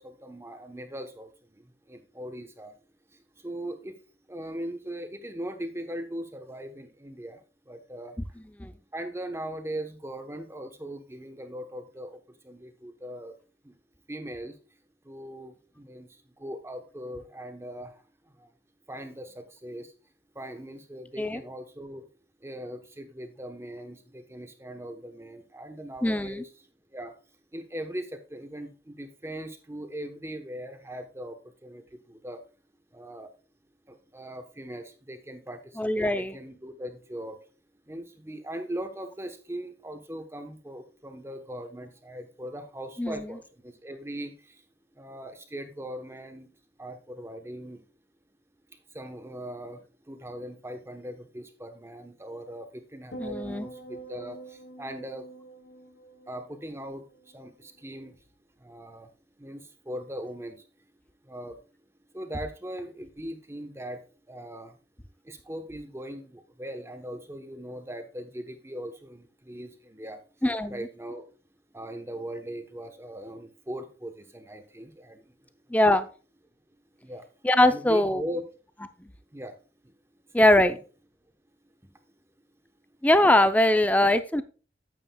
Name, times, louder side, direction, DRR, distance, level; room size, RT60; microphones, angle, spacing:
voice 1, 0.0-2.7 3.1-4.0 4.3-8.4 8.9-13.3 13.6-13.7 14.1-14.6 15.0-18.5 18.9-19.9 20.3-22.1 22.4-26.5 26.9-27.2 27.5-32.4 32.9-33.3 33.9-37.4 37.9-44.6 44.9-46.5 46.8-47.8 48.9-55.3 56.3-58.1 58.6-59.1 59.4-60.6 61.2-61.6 62.1-64.0 64.3-64.8 65.2-70.2 70.7-71.3 71.7-75.3 75.7-75.9 77.0-77.3 77.6-78.4 79.3-79.6 79.8-79.9 80.3-80.8, right 1 dB, 15° right, 7 dB, 0.9 m, -40 dB
voice 2, 26.0-26.4 35.8-36.3 43.0-43.3 53.2-53.7 70.4-70.9 75.7-76.1 77.4-78.2 79.0-79.1 80.3-80.8 83.0-84.4, left 1 dB, 10° left, 11 dB, 0.5 m, -22 dB
sound 1, 53.1-57.5 57.8-58.2, right 2 dB, 65° left, 0.9 m, -45 dB
9.1 x 9.1 x 2.3 m, 0.35 s
head